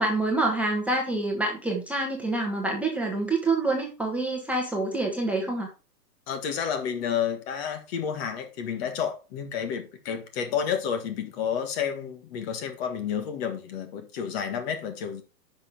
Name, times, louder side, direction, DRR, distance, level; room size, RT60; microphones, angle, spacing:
voice 1, 0.0-5.7, right 2 dB, 5° right, 1.3 m, -27 dB
voice 2, 6.3-15.2, left 7 dB, 40° left, 1.7 m, -30 dB
9.6 x 6.0 x 3.5 m
hypercardioid pair, 150°, 49 cm